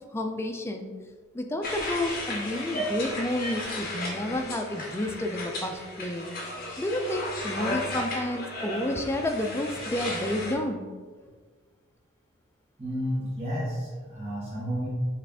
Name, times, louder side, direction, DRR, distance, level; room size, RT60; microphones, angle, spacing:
voice 1, 0.1-0.9 1.3-6.3 6.8-10.9, left 1 dB, 15° left, 4 dB, 0.3 m, -30 dB
sound 1, 1.6-10.5, left 1 dB, 50° left, 0.9 m, -34 dB
voice 2, 12.8-14.9, equal, 30° right, -8 dB, 0.9 m, -31 dB
5.7 x 2.4 x 3.5 m, 1.5 s
head